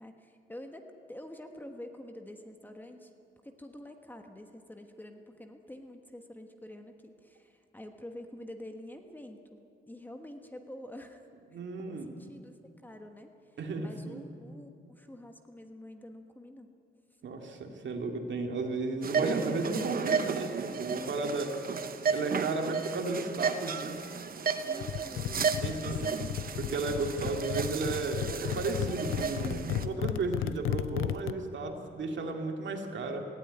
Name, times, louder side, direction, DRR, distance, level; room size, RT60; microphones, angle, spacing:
voice 1, 0.0-3.1 3.4-11.2 11.5-11.6 11.9-12.6 12.8-13.3 13.8-16.7 24.7-25.5 25.8-26.5, left 1 dB, 10° left, 5 dB, 1.2 m, -47 dB
voice 2, 11.5-12.1 13.6-14.2 17.2-21.6 22.1-24.0 25.5-33.2, right 3 dB, 65° right, 3 dB, 2.3 m, -34 dB
sound 1, 19.0-29.9, right 6 dB, 45° right, 1.0 m, -34 dB
sound 2, 24.8-31.3, left 12 dB, 90° left, 0.6 m, -35 dB
18.5 x 16.0 x 9.8 m, 2.4 s
wide cardioid pair, 165°, 20 cm